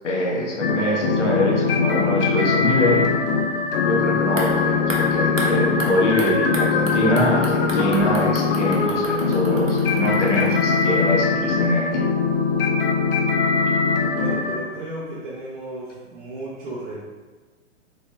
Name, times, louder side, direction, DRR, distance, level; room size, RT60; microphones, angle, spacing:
voice 1, 0.0-3.1 3.8-11.9, left 1 dB, 70° left, -2 dB, 1.3 m, -23 dB
sound 1, 0.6-14.6, left 5 dB, 45° left, 0.6 m, -21 dB
sound 2, 4.2-11.3 11.6-11.7, right 1 dB, 90° right, 0.9 m, -34 dB
voice 2, 14.1-17.0, right 1 dB, 40° right, -7 dB, 0.9 m, -34 dB
3.9 x 3.8 x 3.3 m, 1.3 s
figure-of-eight pair, 110°, 37 cm